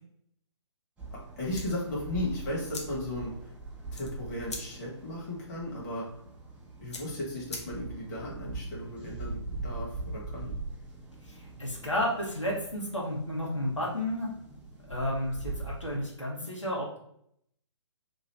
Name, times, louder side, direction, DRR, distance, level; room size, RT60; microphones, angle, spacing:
sound 1, 1.0-16.0, right 3 dB, 10° right, 0.5 m, -42 dB
voice 1, 1.1-3.5 3.9-6.1 6.8-10.5, left 1 dB, 35° left, -4 dB, 1.4 m, -36 dB
sound 2, 1.5-8.1, left 2 dB, 70° left, 0.8 m, -46 dB
voice 2, 11.2-14.3 14.9-17.0, left 1 dB, 85° left, -4 dB, 1.3 m, -32 dB
3.0 x 2.6 x 4.3 m, 0.70 s
figure-of-eight pair, 130°, 15 cm